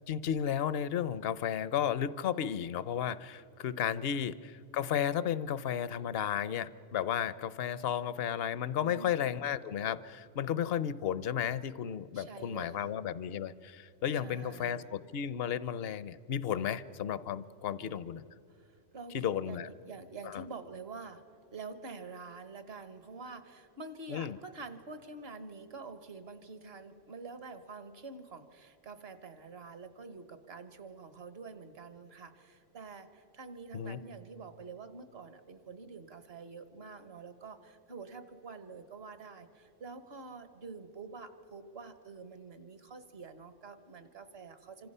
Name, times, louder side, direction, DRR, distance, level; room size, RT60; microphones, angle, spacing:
voice 1, 0.1-18.2 19.1-19.7 20.3-20.4 24.1-24.4 33.7-34.0, left 9 dB, 60° left, 16 dB, 0.8 m, -33 dB
voice 2, 8.8-9.3 12.1-12.9 14.2-14.9 17.8-18.1 18.5-21.2 21.5-44.9, right 4 dB, 55° right, 10 dB, 1.5 m, -47 dB
26.5 x 26.0 x 5.5 m, 2.7 s
omnidirectional pair, 1.3 m